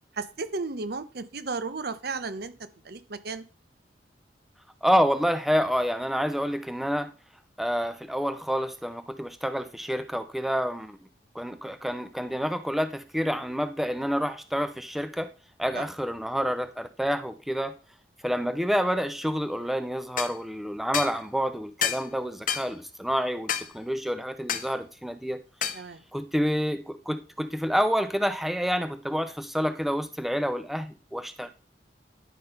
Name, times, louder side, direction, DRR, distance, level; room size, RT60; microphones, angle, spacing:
voice 1, 0.2-2.5 2.9-3.4 15.7-15.9 25.7-26.0, right 4 dB, 60° right, 12 dB, 0.8 m, -34 dB
voice 2, 4.8-7.1 7.6-11.0 11.3-15.3 15.6-17.8 18.2-23.5 23.7-25.4 26.1-31.5, equal, ahead, 9 dB, 0.4 m, -28 dB
sound 1, 20.2-20.3 20.9-21.2 21.8-22.1 22.5-22.7 23.5-23.7 24.5-24.7 25.6-25.8, left 9 dB, 50° left, 0.7 m, -28 dB
10.5 x 3.9 x 5.4 m, 0.35 s
head